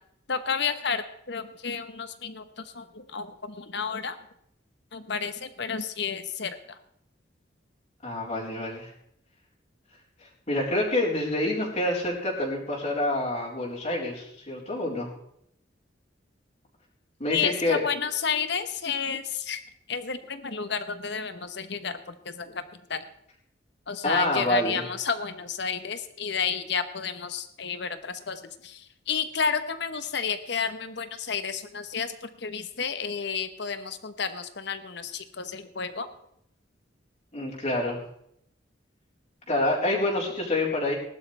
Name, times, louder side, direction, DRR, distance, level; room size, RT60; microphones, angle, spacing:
voice 1, 0.3-4.2 4.9-6.8 17.3-19.6 19.9-22.0 22.2-22.6 22.9-23.0 23.9-36.1, left 6 dB, 65° left, 11 dB, 1.1 m, -31 dB
voice 2, 8.0-8.9 10.5-15.1 17.2-17.8 24.0-24.8 37.3-38.0 39.5-40.9, left 1 dB, 35° left, -3 dB, 4.2 m, -27 dB
19.0 x 12.0 x 3.4 m, 0.74 s
head